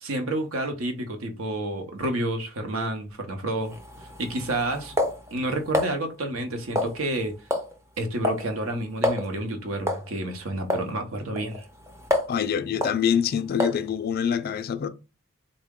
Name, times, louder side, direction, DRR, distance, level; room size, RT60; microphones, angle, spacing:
voice 1, 0.0-3.7 4.2-4.9 5.3-7.3 8.0-11.7, right 1 dB, 70° right, 0.8 m, -29 dB
sound 1, 3.7-5.9 6.8-7.2 7.5-7.7 8.0-8.5 8.7-8.8 9.0-9.3 9.9-10.1 10.7-10.9 11.4-12.4 12.8-13.0 13.6-13.9, left 1 dB, 15° right, 0.5 m, -27 dB
voice 2, 12.3-14.9, left 8 dB, 45° left, 0.4 m, -25 dB
3.6 x 2.1 x 3.5 m
head